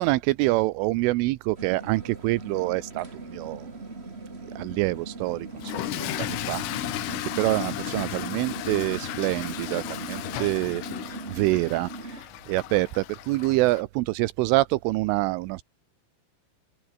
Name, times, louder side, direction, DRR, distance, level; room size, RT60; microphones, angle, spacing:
voice 1, 0.0-3.1 3.3-3.7 4.6-10.8 11.3-15.6, right 20 dB, 85° right, 3.2 m, -26 dB
sound 1, 1.5-12.2, right 3 dB, 20° right, 2.0 m, -39 dB
Toilet flush / Fill (with liquid), 5.5-13.8, left 15 dB, 80° left, 3.9 m, -35 dB
omnidirectional pair, 6.0 m